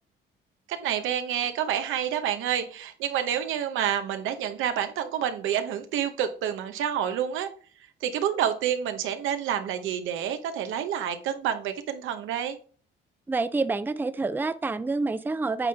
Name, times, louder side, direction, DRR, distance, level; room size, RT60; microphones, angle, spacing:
voice 1, 0.7-7.5 8.0-12.6, right 9 dB, 85° right, 9 dB, 0.8 m, -28 dB
voice 2, 13.3-15.7, right 3 dB, 10° right, 13 dB, 0.4 m, -27 dB
8.2 x 3.8 x 3.4 m, 0.43 s
cardioid pair, 90°, 20 cm